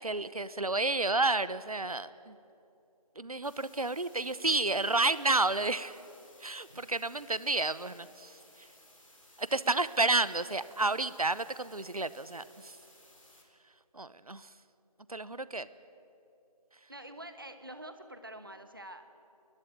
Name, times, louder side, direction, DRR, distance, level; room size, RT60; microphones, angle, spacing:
voice 1, 0.0-2.4 3.2-6.0 6.4-8.3 9.4-12.8 13.9-14.5 15.1-15.7, right 2 dB, 65° right, 16 dB, 0.9 m, -30 dB
sound 1, 3.4-13.4, left 1 dB, 55° left, 3.9 m, -59 dB
voice 2, 16.9-19.0, right 1 dB, 35° right, 8 dB, 1.2 m, -46 dB
29.5 x 12.0 x 9.2 m, 2.8 s
figure-of-eight pair, 175°, 20 cm